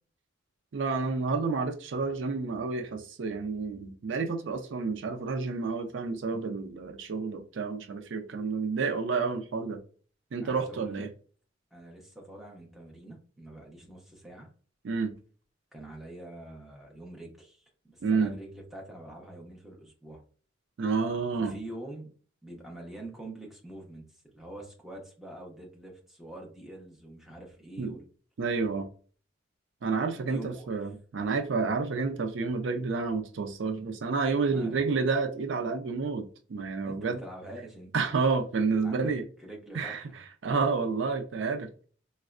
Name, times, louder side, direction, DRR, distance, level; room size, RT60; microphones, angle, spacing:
voice 1, 0.7-9.8 10.3-11.1 14.8-15.1 18.0-18.3 20.8-21.5 27.8-28.0 28.4-28.9 29.8-37.2 37.9-39.2 39.7-40.0 40.4-41.9, right 4 dB, 70° right, 0.4 m, -30 dB
voice 2, 10.4-11.1 11.7-14.5 15.7-17.6 17.9-20.2 21.4-22.2 22.4-24.0 24.3-28.0 30.3-30.9 34.5-34.9 36.8-37.9 38.8-39.1 39.4-40.2, right 1 dB, ahead, 0.7 m, -45 dB
4.2 x 2.1 x 2.4 m
head